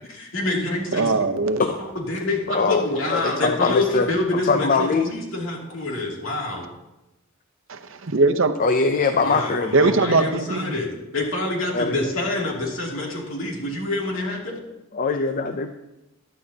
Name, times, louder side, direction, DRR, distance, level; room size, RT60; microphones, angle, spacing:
voice 1, 0.1-1.1 1.8-6.7 9.2-14.6, left 2 dB, 70° left, -1 dB, 2.6 m, -27 dB
voice 2, 0.9-1.6 7.7-8.6 9.7-10.7, right 3 dB, 65° right, 7 dB, 0.8 m, -20 dB
voice 3, 2.5-4.1 4.4-5.1 8.6-9.7 11.7-12.1 14.9-15.8, left 4 dB, 40° left, 8 dB, 0.5 m, -22 dB
15.0 x 11.0 x 2.8 m, 0.96 s
head